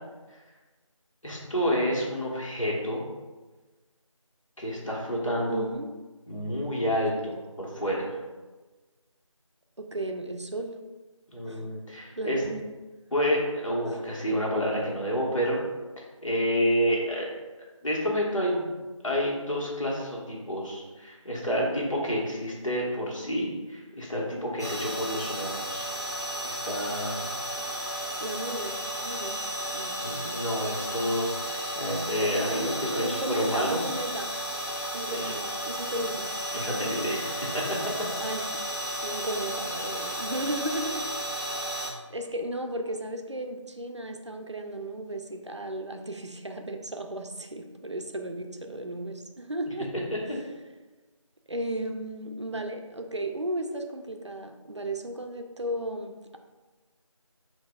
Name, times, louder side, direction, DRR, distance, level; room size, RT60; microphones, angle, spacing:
voice 1, 1.2-3.0 4.6-5.7 6.3-8.2 11.3-12.4 13.1-15.6 16.2-17.3 17.8-18.7 19.0-25.8 26.4-27.2 30.0-34.0 35.1-35.3 36.5-37.6 50.1-50.2, equal, 70° left, -4 dB, 1.5 m, -29 dB
voice 2, 5.5-5.9 9.8-10.8 11.5-11.7 12.2-12.7 13.9-14.1 28.2-30.0 32.4-34.3 34.9-36.3 36.7-37.3 38.2-38.6 39.0-41.1 41.4-41.7 42.1-49.9 51.5-56.4, right 1 dB, 60° right, 4 dB, 0.5 m, -35 dB
sound 1, 24.6-41.9, right 1 dB, 30° left, 0.9 m, -33 dB
6.6 x 2.7 x 2.4 m, 1.2 s
figure-of-eight pair, 180°, 17 cm